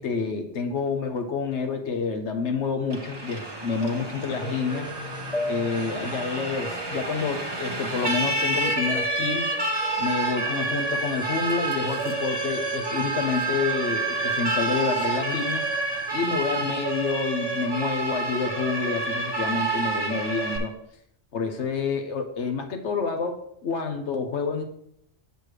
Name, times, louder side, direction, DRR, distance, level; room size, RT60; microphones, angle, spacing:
voice 1, 0.0-4.9 5.5-9.5 10.0-15.7 16.1-20.8 21.3-24.6, left 5 dB, 85° left, 5 dB, 1.2 m, -28 dB
Siren, 2.9-20.6, right 2 dB, 25° right, 1.0 m, -29 dB
sound 1, 3.8-4.4 5.3-6.1 8.0-8.3 9.8-10.3 10.7-10.9 11.5-12.5 12.8-13.6 14.4-15.3, left 2 dB, 35° left, 0.8 m, -39 dB
sound 2, 4.4-16.4, right 6 dB, 5° right, 0.5 m, -36 dB
8.0 x 6.9 x 3.2 m, 0.73 s
omnidirectional pair, 1.2 m